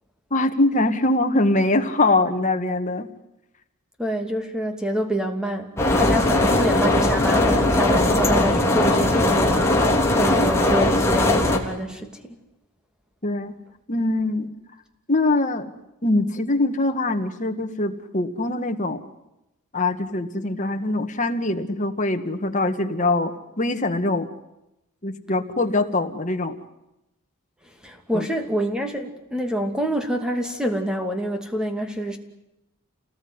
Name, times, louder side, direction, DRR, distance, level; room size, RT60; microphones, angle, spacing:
voice 1, 0.3-3.1 13.2-13.5 13.9-14.5 15.1-15.7 16.0-19.0 19.7-24.3 25.0-26.6 28.1-28.3, left 2 dB, 35° left, 6 dB, 1.9 m, -23 dB
voice 2, 4.0-5.7 6.0-12.4 27.8-32.2, equal, 5° right, 5 dB, 2.7 m, -27 dB
sound 1, 5.8-11.6, left 1 dB, 10° left, 3.4 m, -19 dB
28.5 x 19.5 x 9.8 m, 0.90 s
head